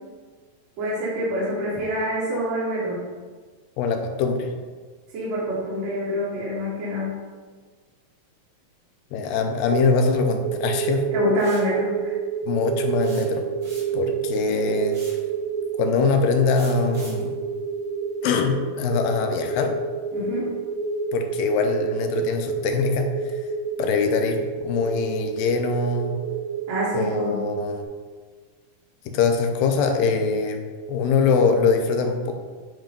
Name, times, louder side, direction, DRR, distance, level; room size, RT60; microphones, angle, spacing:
voice 1, 0.8-3.0 5.1-7.3 11.1-12.1 20.1-20.5 26.7-27.6, equal, 55° right, -7 dB, 2.5 m, -26 dB
voice 2, 3.8-4.5 9.1-11.1 12.5-13.4 13.9-15.0 15.8-17.3 18.2-19.7 21.1-23.3 23.8-26.2 26.9-27.8 29.1-30.6 30.9-32.3, left 4 dB, 85° left, 5 dB, 2.4 m, -23 dB
sound 1, 9.7-27.8, right 6 dB, 85° right, 1.7 m, -29 dB
sound 2, 11.4-11.7 13.0-14.1 14.9-15.3 16.5-17.3, right 1 dB, 35° right, 0.7 m, -43 dB
9.1 x 3.1 x 5.1 m, 1.5 s
omnidirectional pair, 3.9 m